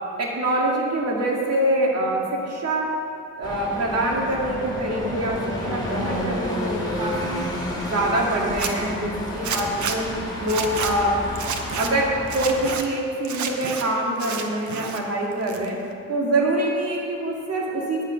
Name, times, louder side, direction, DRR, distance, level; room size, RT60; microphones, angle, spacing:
voice 1, 0.2-2.9 3.4-7.4 7.8-10.1 10.4-11.2 11.8-15.8 16.1-18.0, right 1 dB, 55° right, -2 dB, 2.3 m, -25 dB
sound 1, 3.4-12.8, left 1 dB, 15° left, 2.6 m, -31 dB
Zipper (clothing), 8.4-8.7 9.4-10.0 10.4-10.9 11.3-11.9 12.3-12.8 13.2-13.8 14.2-15.0 15.3-15.9, right 7 dB, 70° right, 1.0 m, -29 dB
9.8 x 8.2 x 5.3 m, 2.6 s
cardioid pair, 90°, 30 cm